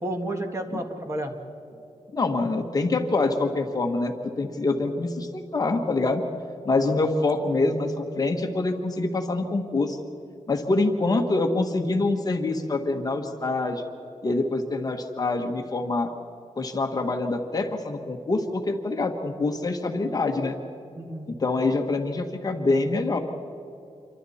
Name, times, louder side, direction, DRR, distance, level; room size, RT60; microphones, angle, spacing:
voice 1, 0.0-1.3 1.7-1.8 6.8-7.0 21.0-21.4, right 1 dB, 25° right, 3 dB, 1.9 m, -32 dB
voice 2, 2.1-6.2 6.6-10.0 10.5-13.8 14.2-16.1 16.6-20.6 21.3-23.2, left 2 dB, 30° left, 4 dB, 1.4 m, -25 dB
28.0 x 24.5 x 4.3 m, 2.8 s
wide cardioid pair, 170°, 12 cm